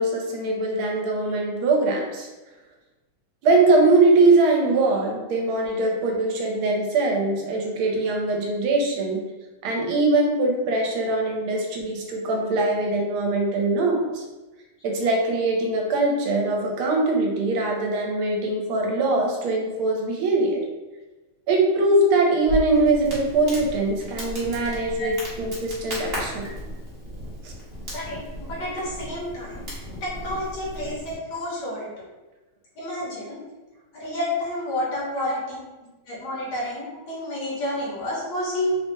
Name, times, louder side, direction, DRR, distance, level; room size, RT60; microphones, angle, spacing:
voice 1, 0.0-2.3 3.4-9.2 9.6-14.2 14.8-20.6 21.5-26.5 27.4-27.5, right 2 dB, 85° right, 0 dB, 1.5 m, -22 dB
Crackle, 22.5-31.1, right 1 dB, 40° right, 0.9 m, -35 dB
voice 2, 27.9-29.7 30.0-32.1 32.8-33.4 33.9-35.7 36.1-38.8, left 1 dB, 65° left, -4 dB, 1.3 m, -30 dB
3.8 x 2.1 x 3.2 m, 1.1 s
omnidirectional pair, 2.3 m